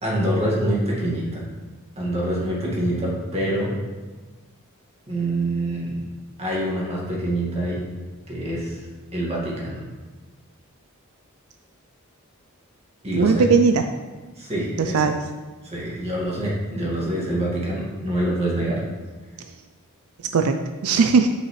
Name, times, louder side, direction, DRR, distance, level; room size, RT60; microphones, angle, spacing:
voice 1, 0.0-1.4 2.0-3.7 5.1-6.0 6.4-7.8 8.3-8.8 9.1-9.8 13.0-13.5 14.4-15.0 15.6-18.8, right 1 dB, 30° right, -5 dB, 1.9 m, -25 dB
voice 2, 13.2-13.8 14.8-15.2 20.3-21.3, right 5 dB, 80° right, 7 dB, 0.4 m, -18 dB
8.5 x 5.8 x 3.2 m, 1.3 s
head